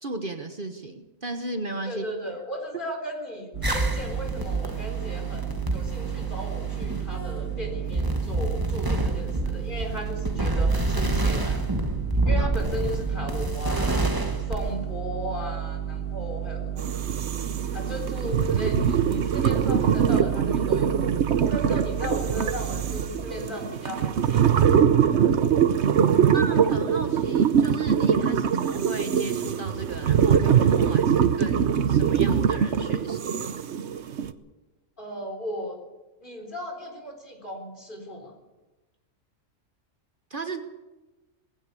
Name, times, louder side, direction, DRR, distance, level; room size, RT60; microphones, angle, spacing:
voice 1, 0.0-2.1 12.4-12.5 26.3-33.6 40.3-40.6, right 2 dB, 45° right, 6 dB, 1.4 m, -35 dB
voice 2, 1.8-11.6 12.3-14.1 14.5-16.9 17.7-21.1 21.5-24.6 35.0-35.8 36.2-38.3, equal, 40° left, 2 dB, 4.2 m, -36 dB
sound 1, 3.5-23.1, right 10 dB, 90° right, 2.1 m, -32 dB
sound 2, 3.6-14.8, right 2 dB, 15° right, 1.3 m, -28 dB
sound 3, 16.8-34.3, right 8 dB, 60° right, 1.1 m, -23 dB
19.0 x 16.5 x 8.4 m, 1.1 s
omnidirectional pair, 1.3 m